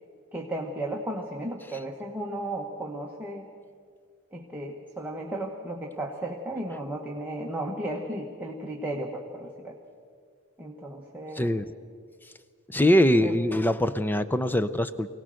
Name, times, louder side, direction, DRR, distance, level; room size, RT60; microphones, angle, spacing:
voice 1, 0.3-3.5 4.3-9.8 10.6-11.5 13.2-13.4, right 1 dB, 10° right, -1 dB, 1.2 m, -34 dB
voice 2, 12.7-15.2, left 1 dB, 10° left, 11 dB, 0.5 m, -23 dB
24.0 x 17.5 x 6.4 m, 2.1 s
head